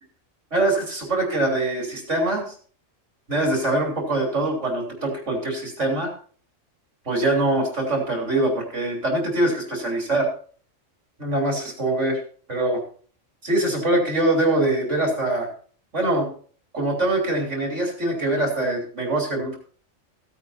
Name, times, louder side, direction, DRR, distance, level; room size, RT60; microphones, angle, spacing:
voice 1, 0.5-2.5 3.3-6.1 7.1-10.3 11.2-12.2 12.5-12.8 13.4-15.5 15.9-16.3 16.7-19.6, right 2 dB, 65° right, 0 dB, 3.6 m, -23 dB
16.5 x 9.0 x 2.8 m, 0.43 s
omnidirectional pair, 1.4 m